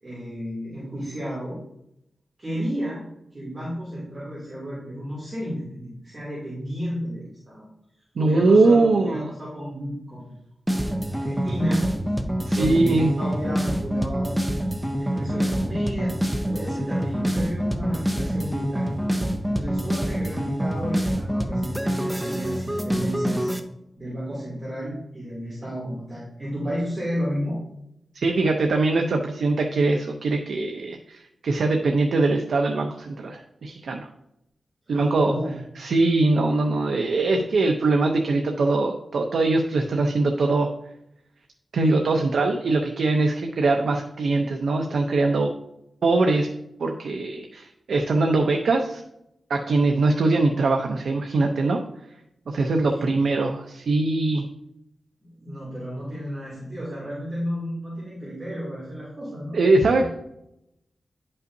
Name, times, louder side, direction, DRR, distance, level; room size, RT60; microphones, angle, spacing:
voice 1, 0.0-1.6 2.4-3.0 3.3-7.7 8.2-10.2 10.7-11.8 12.5-14.4 15.0-16.2 16.5-18.9 19.5-23.5 24.0-27.6 34.9-35.5 52.9-53.2 55.2-59.6 60.0-60.1, equal, 30° right, -8 dB, 2.7 m, -32 dB
voice 2, 8.2-9.3 12.5-13.1 28.1-34.1 34.9-35.3 35.8-40.7 41.7-45.5 46.0-46.5 46.8-49.0 49.5-51.8 52.5-54.5 59.5-60.1, right 3 dB, 85° right, 3 dB, 0.6 m, -22 dB
sound 1, 10.7-23.6, equal, 5° right, 0.6 m, -26 dB
10.5 x 5.5 x 2.7 m, 0.81 s
wide cardioid pair, 115°, 0 cm